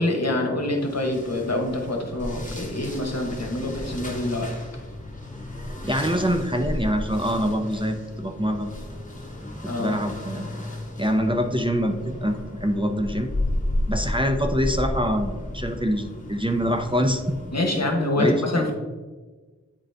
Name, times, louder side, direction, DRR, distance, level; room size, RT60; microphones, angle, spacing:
voice 1, 0.0-4.5 9.7-10.0 17.5-18.7, left 1 dB, 60° left, 2 dB, 1.1 m, -25 dB
sound 1, 0.8-17.9, left 1 dB, 25° left, 1.5 m, -33 dB
voice 2, 5.8-8.7 9.6-10.5 11.0-13.3 13.9-17.4 18.2-18.7, equal, 15° right, 4 dB, 0.6 m, -25 dB
9.0 x 3.9 x 3.4 m, 1.3 s
wide cardioid pair, 55°, 29 cm